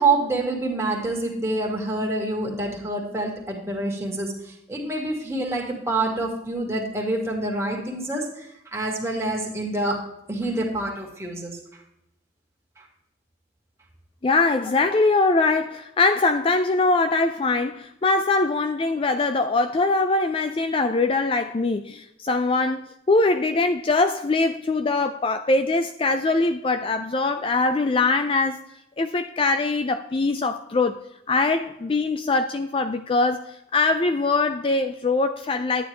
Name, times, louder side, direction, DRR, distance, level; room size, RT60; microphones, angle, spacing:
voice 1, 0.0-10.0 10.3-11.6 12.8-12.9, right 2 dB, 15° right, 2.1 m, -27 dB
voice 2, 14.2-28.6 29.0-35.9, left 3 dB, 30° left, 0.4 m, -22 dB
11.5 x 9.5 x 3.3 m
head